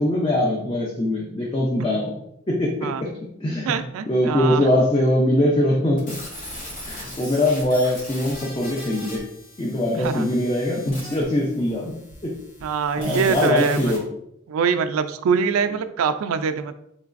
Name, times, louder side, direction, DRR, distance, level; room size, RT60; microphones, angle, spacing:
voice 1, 0.0-2.1 2.5-3.1 3.4-3.7 4.1-6.1 6.9-9.2 9.6-11.9 12.2-12.4 13.0-14.0, left 1 dB, 25° left, -3 dB, 0.5 m, -22 dB
voice 2, 3.6-4.7 9.9-10.3 12.6-13.9 14.5-16.7, right 6 dB, 90° right, 10 dB, 0.3 m, -24 dB
sound 1, 6.0-14.0, left 1 dB, 40° left, 0.9 m, -39 dB
3.8 x 3.2 x 2.5 m, 0.76 s
head